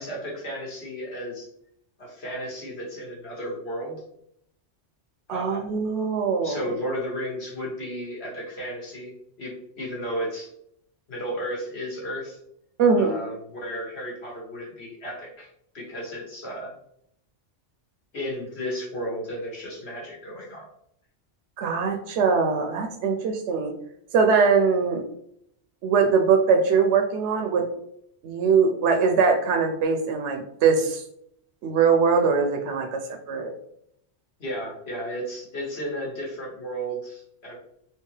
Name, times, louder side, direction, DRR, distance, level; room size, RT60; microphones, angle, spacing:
voice 1, 0.0-1.5 2.0-4.0 5.3-5.7 6.4-9.1 9.4-10.5 11.1-12.4 13.0-15.5 15.7-16.7 18.1-20.7 34.4-37.6, equal, 60° left, -3 dB, 1.4 m, -33 dB
voice 2, 5.3-6.7 12.8-13.2 21.6-23.7 24.1-25.0 25.8-27.6 28.2-31.0 31.6-33.5, right 5 dB, 75° right, 3 dB, 0.8 m, -22 dB
3.3 x 2.9 x 3.2 m, 0.73 s
omnidirectional pair, 1.2 m